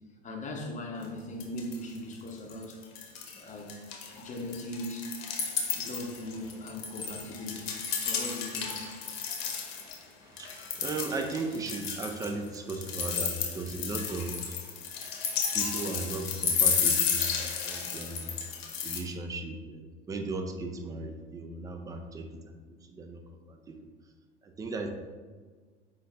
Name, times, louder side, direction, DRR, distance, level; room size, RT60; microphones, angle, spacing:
voice 1, 0.2-2.8 3.3-5.1 5.7-8.8, left 1 dB, 20° left, 1 dB, 0.8 m, -39 dB
sound 1, 1.0-1.1 1.4-2.0 2.3-3.4 3.7-10.0 10.4-19.0, left 6 dB, 65° left, 0.9 m, -32 dB
voice 2, 10.2-14.5 15.5-17.3 17.6-18.3 18.8-23.2 23.5-23.8 24.4-24.9, right 3 dB, 10° right, 4 dB, 0.3 m, -36 dB
5.3 x 2.7 x 3.3 m, 1.5 s
hypercardioid pair, 85°, 34 cm